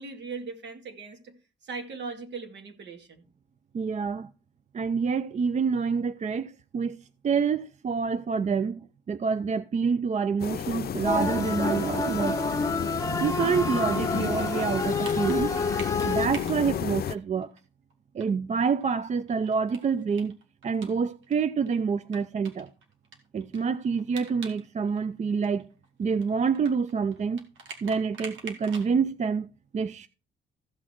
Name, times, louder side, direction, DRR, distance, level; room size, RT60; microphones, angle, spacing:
voice 1, 0.0-1.3 1.6-3.2, right 4 dB, 60° right, 2.3 m, -39 dB
voice 2, 3.7-4.3 4.7-7.0 7.2-12.5 13.2-15.5 16.0-17.5 18.1-20.4 20.6-22.7 23.3-25.7 26.0-27.4 27.8-30.1, right 5 dB, 35° right, 0.5 m, -27 dB
sound 1, 10.4-17.2, left 9 dB, 50° left, 0.6 m, -32 dB
sound 2, 11.1-16.3, left 2 dB, 15° left, 1.2 m, -29 dB
sound 3, 13.8-17.6 17.9-18.0 18.2-18.3 18.7-21.4 21.7-21.8 22.1-24.6 24.9-28.9, right 4 dB, 85° right, 2.5 m, -45 dB
15.0 x 6.3 x 4.5 m
cardioid pair, 90°, 20 cm